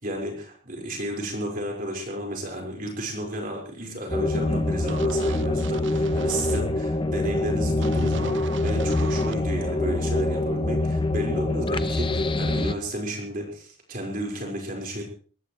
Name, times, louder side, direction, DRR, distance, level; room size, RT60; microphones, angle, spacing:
voice 1, 0.0-15.0, right 1 dB, 40° right, 0 dB, 5.1 m, -32 dB
sound 1, 4.1-12.7, left 2 dB, 25° left, 0.8 m, -25 dB
sound 2, 4.9-6.6 7.8-9.3, right 4 dB, 60° right, 0.7 m, -38 dB
22.0 x 18.5 x 3.3 m, 0.42 s
head